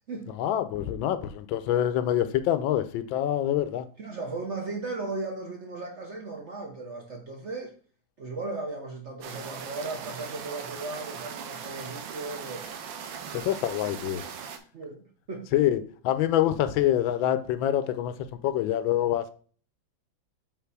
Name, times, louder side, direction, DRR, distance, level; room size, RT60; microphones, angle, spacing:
voice 1, 0.4-3.8 13.3-14.2 15.5-18.1 18.4-19.3, left 11 dB, 80° left, 1.3 m, -26 dB
voice 2, 4.0-7.7 8.2-12.7 14.7-15.5, right 3 dB, 55° right, 0.8 m, -36 dB
sound 1, 9.2-14.6, right 7 dB, 75° right, 1.4 m, -39 dB
5.8 x 3.7 x 4.7 m
omnidirectional pair, 2.2 m